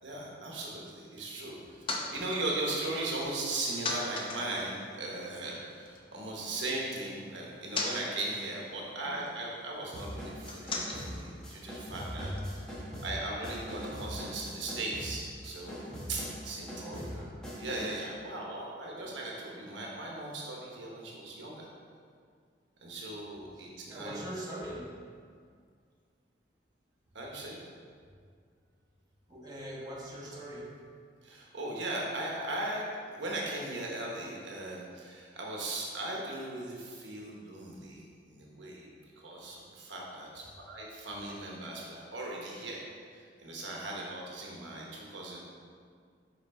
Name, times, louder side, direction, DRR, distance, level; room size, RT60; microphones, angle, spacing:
voice 1, 0.0-17.0 17.6-21.7 22.8-24.3 27.1-27.6 31.2-32.9 33.1-42.8 43.1-45.4, right 2 dB, 75° right, -3 dB, 1.1 m, -38 dB
Shotgun shell ejection, 1.4-6.0 6.3-12.4, left 2 dB, 30° left, 0.7 m, -41 dB
sound 1, 9.9-18.1, equal, 5° left, 1.2 m, -42 dB
voice 2, 11.8-13.0 16.8-17.4 23.5-24.9 29.3-30.7, equal, 20° right, -6 dB, 1.2 m, -42 dB
5.8 x 5.0 x 4.3 m, 2.1 s
head